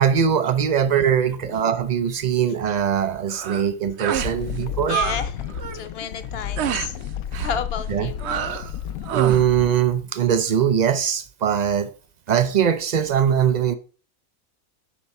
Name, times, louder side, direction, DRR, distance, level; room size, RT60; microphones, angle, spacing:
voice 1, 0.0-5.0 7.9-8.1 8.5-8.6 9.1-11.9 12.3-13.7, right 8 dB, 80° right, 0.3 m, -21 dB
sound 1, 3.3-3.7 4.0-4.4 4.6-5.2 5.5-5.8 6.6-6.9 7.3-7.6 8.2-8.7 9.0-9.5, right 9 dB, 60° right, 0.8 m, -27 dB
sound 2, 4.2-9.7, left 9 dB, 75° left, 1.0 m, -32 dB
voice 2, 4.9-5.4 5.7-7.0 7.4-8.3, left 7 dB, 50° left, 1.0 m, -31 dB
10.0 x 5.7 x 4.2 m
omnidirectional pair, 1.5 m